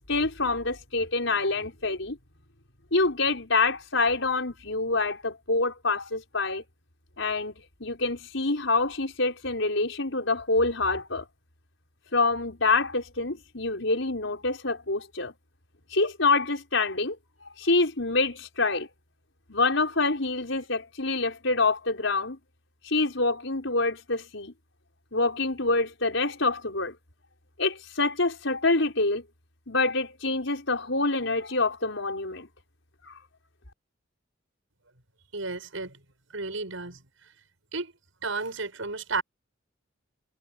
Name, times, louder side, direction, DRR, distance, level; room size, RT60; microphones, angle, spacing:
voice 1, 0.1-2.2 2.9-6.6 7.2-7.5 7.8-11.3 12.1-15.3 15.9-17.2 17.6-18.9 19.5-22.4 22.8-24.5 25.1-26.9 27.6-29.2 29.7-32.5 33.0-33.1, left 3 dB, 75° left, 5.1 m, -26 dB
voice 2, 35.3-36.0 36.3-37.3 37.7-37.9 38.2-39.2, right 3 dB, 90° right, 7.2 m, -33 dB
head